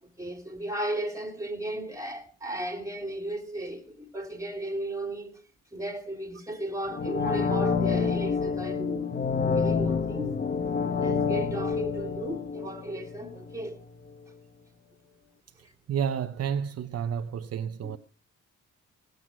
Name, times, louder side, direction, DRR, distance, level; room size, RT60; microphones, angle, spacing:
voice 1, 0.0-5.4 5.7-10.4 10.9-13.8 17.8-17.9, right 1 dB, 10° right, 3.3 m, -35 dB
sound 1, 6.9-13.7 14.0-14.1, left 5 dB, 30° left, 1.0 m, -28 dB
voice 2, 15.9-18.0, right 8 dB, 55° right, 0.9 m, -30 dB
18.5 x 7.9 x 6.2 m
cardioid pair, 90°, 30 cm